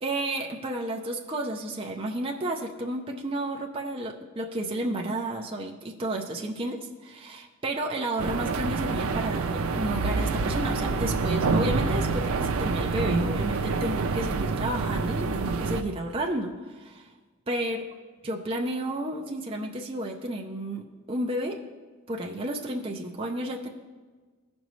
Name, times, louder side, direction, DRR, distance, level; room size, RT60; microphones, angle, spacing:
voice 1, 0.0-17.1 17.5-17.8 18.2-21.6 22.1-23.7, right 1 dB, 25° right, 1 dB, 0.5 m, -32 dB
sound 1, 8.2-15.8, right 4 dB, 90° right, 0.5 m, -27 dB
15.5 x 5.3 x 3.1 m, 1.4 s
head